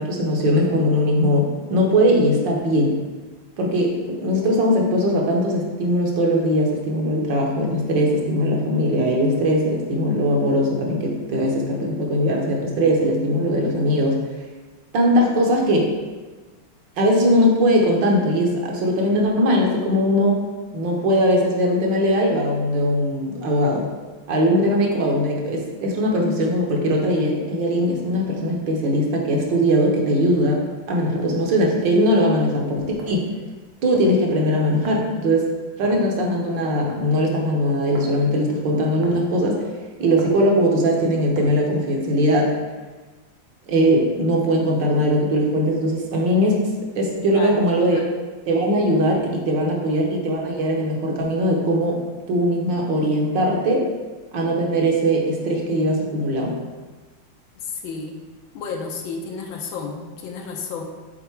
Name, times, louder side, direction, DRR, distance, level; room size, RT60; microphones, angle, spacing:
voice 1, 0.0-3.0 3.6-14.2 14.9-15.9 17.0-20.4 20.7-23.9 24.3-30.6 30.9-33.3 33.8-35.5 35.8-39.6 40.0-42.5 43.7-48.0 48.5-52.0 52.3-53.9 54.3-56.5, equal, 65° right, -1 dB, 1.6 m, -20 dB
sound 1, 33.0-33.2 33.9-34.2 34.8-35.1 35.8-36.1 36.9-37.2 37.9-38.1 39.0-39.3 40.2-40.4 41.4-41.6, right 1 dB, 90° right, 1.9 m, -38 dB
voice 2, 47.2-48.1 49.7-49.8 57.6-58.2 58.5-60.8, left 5 dB, 75° left, 2 dB, 1.5 m, -32 dB
6.9 x 4.0 x 4.5 m, 1.3 s
omnidirectional pair, 2.3 m